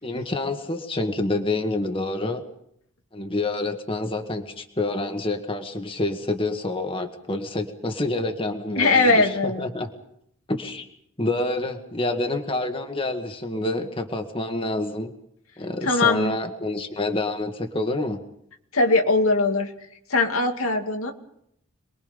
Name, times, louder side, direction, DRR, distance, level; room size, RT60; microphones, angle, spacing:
voice 1, 0.0-2.4 3.1-9.9 10.5-10.9 11.2-15.1 15.6-18.2, left 2 dB, 25° left, 5 dB, 1.8 m, -27 dB
voice 2, 8.8-9.6 15.8-16.4 18.7-19.7 20.1-21.1, left 3 dB, 85° left, 4 dB, 2.5 m, -20 dB
27.5 x 22.0 x 5.3 m, 0.74 s
head